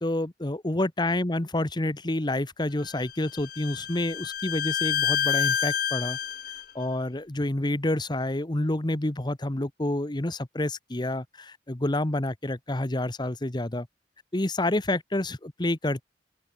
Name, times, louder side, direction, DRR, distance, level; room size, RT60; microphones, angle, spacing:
voice 1, 0.0-6.2 6.7-13.9 14.3-16.0, left 1 dB, 25° left, 1.1 m, -28 dB
Bowed string instrument, 2.8-6.6, left 8 dB, 55° left, 3.0 m, -28 dB
open air
head